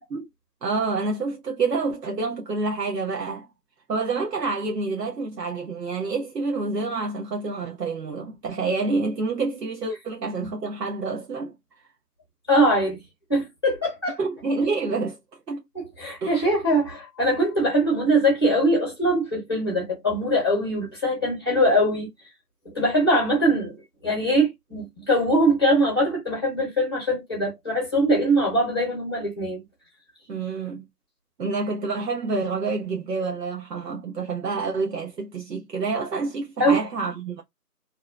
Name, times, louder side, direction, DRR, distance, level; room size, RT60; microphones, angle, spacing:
voice 1, 0.6-3.5 3.9-11.5 14.2-15.2 15.5-15.6 16.2-16.5 30.3-30.8 31.4-37.4, right 3 dB, 85° right, 0.9 m, -28 dB
voice 2, 12.5-13.0 13.3-14.2 15.7-22.1 22.6-23.7 24.0-29.6 36.6-36.8, equal, 15° left, 0.9 m, -22 dB
2.8 x 2.1 x 2.4 m
figure-of-eight pair, 165°, 48 cm